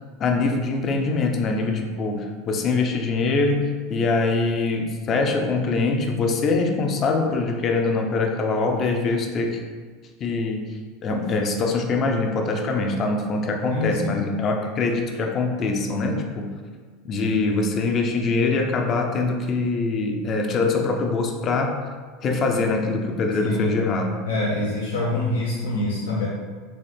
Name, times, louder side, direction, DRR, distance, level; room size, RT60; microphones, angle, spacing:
voice 1, 0.2-9.6 10.2-10.6 11.0-16.5 17.0-21.8 22.2-24.1, left 3 dB, 40° left, 3 dB, 0.6 m, -23 dB
voice 2, 13.7-14.2 23.4-23.8 24.2-26.3, left 2 dB, 85° left, -5 dB, 0.6 m, -25 dB
4.1 x 2.7 x 3.4 m, 1.5 s
hypercardioid pair, 85°, 0 cm